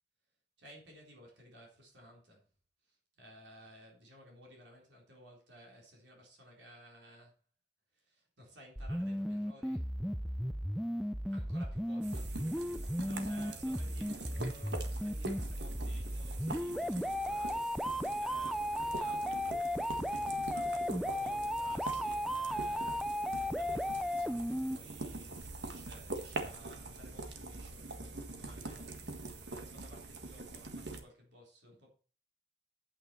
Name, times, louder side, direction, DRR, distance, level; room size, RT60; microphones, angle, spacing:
voice 1, 0.6-2.5 2.8-7.4 7.9-9.9 11.3-12.3 12.8-31.9, equal, 90° right, 3.9 m, -57 dB
sound 1, 8.8-24.8, equal, ahead, 0.4 m, -35 dB
sound 2, 12.0-31.0, right 2 dB, 70° right, 1.6 m, -44 dB
9.0 x 9.0 x 4.4 m
head